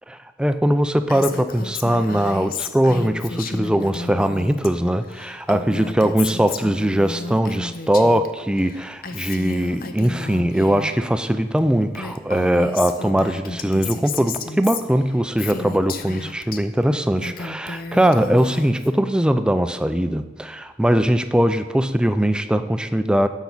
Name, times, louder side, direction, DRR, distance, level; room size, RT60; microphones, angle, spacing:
voice 1, 0.1-23.3, right 1 dB, 5° right, 10 dB, 0.3 m, -20 dB
Female speech woman speaking, 1.1-4.7 5.0-8.3 8.6-11.0 11.6-11.7 11.9-16.6 17.0-18.9, left 3 dB, 55° left, 0.6 m, -33 dB
10.5 x 7.1 x 4.0 m, 1.2 s
head